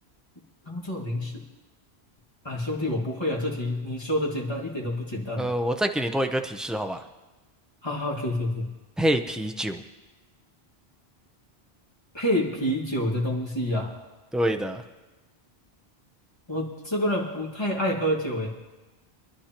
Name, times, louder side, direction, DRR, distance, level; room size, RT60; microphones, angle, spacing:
voice 1, 0.7-1.4 2.4-5.5 7.8-8.7 12.1-13.9 16.5-18.5, left 1 dB, 25° left, -3 dB, 2.2 m, -28 dB
voice 2, 5.4-7.0 9.0-9.8 14.3-14.8, equal, ahead, 5 dB, 0.5 m, -26 dB
25.0 x 11.5 x 3.0 m, 1.2 s
omnidirectional pair, 1.1 m